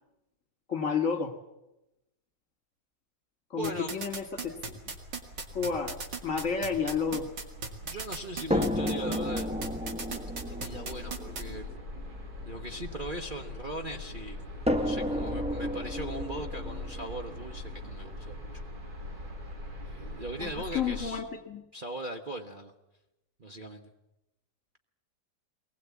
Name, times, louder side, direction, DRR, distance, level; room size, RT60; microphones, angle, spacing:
voice 1, 0.7-1.3 3.5-4.9 5.5-7.3 20.4-21.6, left 6 dB, 45° left, 5 dB, 2.3 m, -31 dB
voice 2, 3.6-4.0 7.8-9.5 10.5-11.7 12.4-14.4 14.8-18.5 19.9-21.2 21.7-22.7 23.4-23.9, right 1 dB, 30° right, 2 dB, 1.2 m, -39 dB
sound 1, 3.6-11.4, right 5 dB, 75° right, 2.9 m, -36 dB
sound 2, 4.1-21.1, left 1 dB, 55° right, 3.2 m, -43 dB
sound 3, 8.5-13.7 14.7-18.6 19.6-19.7 20.1-20.2, left 1 dB, 5° right, 0.8 m, -33 dB
22.5 x 20.0 x 8.4 m, 0.95 s
omnidirectional pair, 2.0 m